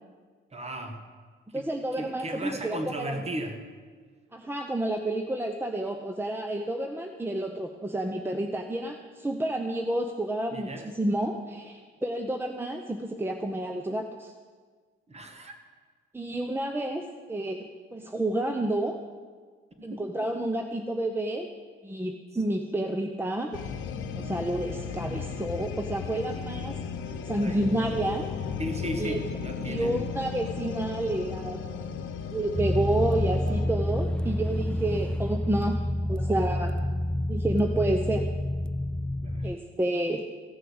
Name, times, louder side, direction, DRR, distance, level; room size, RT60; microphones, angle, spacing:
voice 1, 0.5-1.0 1.5-1.7 2.0-3.6 10.5-10.9 15.1-15.5 19.8-20.0 27.4-27.7 28.6-30.1 39.2-39.5, right 1 dB, 30° right, 5 dB, 2.0 m, -36 dB
voice 2, 1.5-3.2 4.3-14.3 16.1-19.0 19.8-21.5 21.8-23.6 24.1-26.8 27.3-28.3 29.0-29.2 29.6-31.6 32.3-35.8 36.1-36.7 37.3-38.3 39.4-40.2, right 1 dB, 10° right, 4 dB, 0.8 m, -30 dB
sound 1, 23.5-33.7, left 6 dB, 85° left, 0.9 m, -35 dB
sound 2, 32.6-39.6, left 1 dB, 5° left, 0.4 m, -28 dB
15.0 x 6.5 x 8.0 m, 1.6 s
cardioid pair, 90°, 20 cm